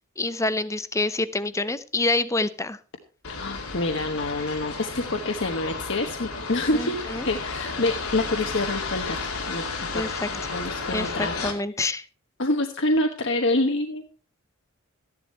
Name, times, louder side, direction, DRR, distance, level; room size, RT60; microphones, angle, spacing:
voice 1, 0.2-2.8 6.7-7.3 9.9-10.3 10.9-12.1, left 2 dB, 15° left, 14 dB, 0.6 m, -27 dB
sound 1, 3.2-11.5, left 4 dB, 85° left, 2.7 m, -33 dB
voice 2, 3.3-7.0 7.2-9.2 9.5-10.0 10.5-11.3 12.4-14.0, left 2 dB, 55° left, 4 dB, 1.2 m, -26 dB
14.0 x 11.0 x 4.3 m, 0.36 s
head